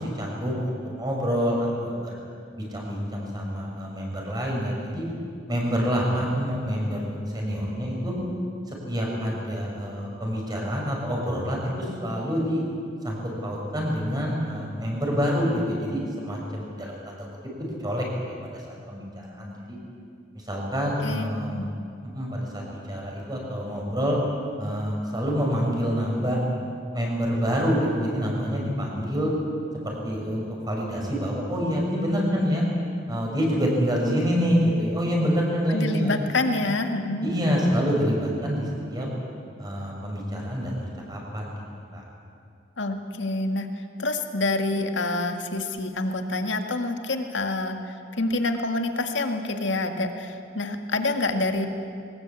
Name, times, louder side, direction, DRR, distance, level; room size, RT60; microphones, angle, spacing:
voice 1, 0.0-2.2 2.6-5.0 5.5-8.1 8.7-12.6 13.0-17.2 17.6-19.8 20.3-21.6 22.0-24.2 24.6-26.4 26.9-29.4 29.8-32.6 33.1-36.1 37.2-39.1 39.6-41.6 41.9-42.0, equal, 20° right, -1 dB, 6.0 m, -27 dB
voice 2, 21.0-21.7 35.7-37.3 42.8-51.7, left 2 dB, 75° left, 5 dB, 1.9 m, -27 dB
22.0 x 20.0 x 8.4 m, 2.4 s
head